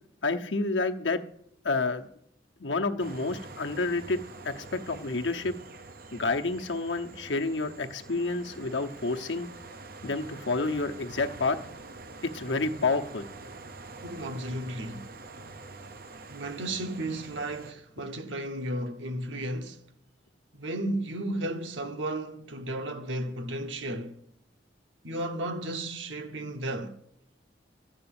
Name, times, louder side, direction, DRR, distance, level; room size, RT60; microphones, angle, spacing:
voice 1, 0.2-1.2 1.6-2.1 2.6-5.5 6.1-9.5 10.0-11.6 12.3-13.2, left 3 dB, 80° left, 1.0 m, -29 dB
sound 1, 3.0-17.7, right 3 dB, 50° right, 0.7 m, -46 dB
voice 2, 14.0-15.1 16.3-19.8 20.5-24.2 25.0-27.0, right 1 dB, 85° right, 1.1 m, -34 dB
13.0 x 5.4 x 8.8 m
head